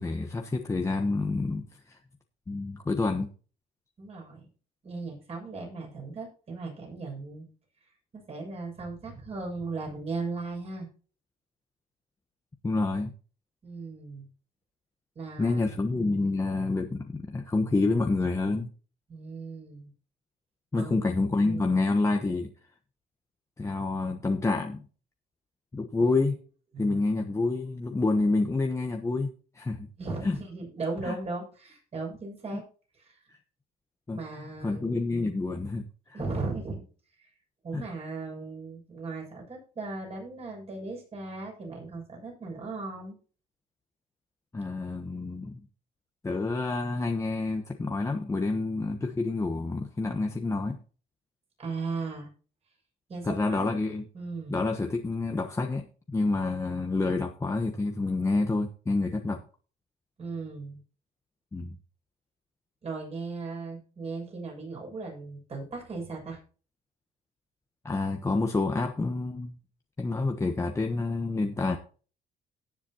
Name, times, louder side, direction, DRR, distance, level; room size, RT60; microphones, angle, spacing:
voice 1, 0.0-2.0 2.5-3.3 12.6-13.1 15.4-18.7 20.7-22.5 23.6-24.8 25.7-26.4 26.8-29.9 30.2-30.4 31.0-31.2 33.3-33.4 34.1-34.2 34.6-36.2 37.7-37.8 44.5-45.6 46.2-50.8 53.2-54.0 54.5-59.4 61.5-61.8 67.8-69.6 70.0-71.8, left 3 dB, 15° left, 3 dB, 1.1 m, -28 dB
voice 2, 4.0-4.5 4.8-7.5 8.1-10.9 13.6-14.3 15.2-15.6 15.9-16.4 19.1-19.9 20.7-21.8 26.0-26.2 26.7-27.0 30.0-32.6 32.9-33.2 34.1-35.3 36.1-36.8 37.2-37.3 37.6-43.2 51.6-52.3 53.1-53.8 54.1-54.6 60.2-60.8 62.8-66.4, right 3 dB, 40° right, 0 dB, 7.1 m, -37 dB
17.5 x 7.3 x 2.9 m, 0.38 s
cardioid pair, 110°, 17 cm